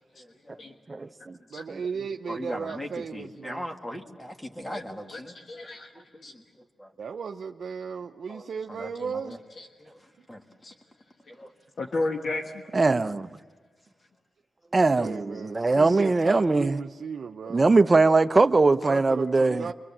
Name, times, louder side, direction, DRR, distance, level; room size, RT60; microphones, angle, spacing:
voice 1, 0.1-1.1 2.3-5.3 5.9-6.9 8.3-9.4 9.8-10.4 11.3-11.5 17.6-17.8, equal, 15° left, 2.2 m, -40 dB
voice 2, 0.9-1.4 1.7-1.8 12.7-13.3 14.7-16.8 17.5-19.7, right 3 dB, 30° right, 0.8 m, -21 dB
voice 3, 1.5-3.6 7.0-9.4 15.0-17.6 18.8-19.7, right 6 dB, 70° right, 0.7 m, -35 dB
voice 4, 5.5-5.9 6.2-6.3 9.0-9.1 9.6-9.7 10.6-10.7 11.8-12.4, left 2 dB, 65° left, 1.6 m, -32 dB
29.0 x 24.0 x 7.4 m
cardioid pair, 85°, 0 cm